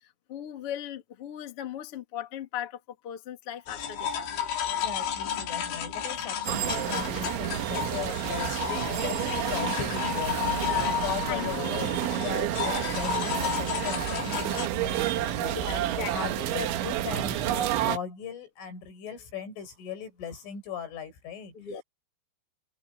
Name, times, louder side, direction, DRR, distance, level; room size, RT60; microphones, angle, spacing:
voice 1, 0.3-4.5 6.0-6.1 10.6-11.0 11.3-11.5 15.5-16.4 21.5-21.8, left 10 dB, 35° left, 2.7 m, -38 dB
sound 1, 3.7-14.7, left 9 dB, 70° left, 5.8 m, -32 dB
voice 2, 4.5-15.6 16.1-21.5, left 7 dB, 85° left, 8.6 m, -38 dB
sound 2, 6.5-18.0, right 12 dB, 80° right, 3.8 m, -30 dB
omnidirectional pair, 5.4 m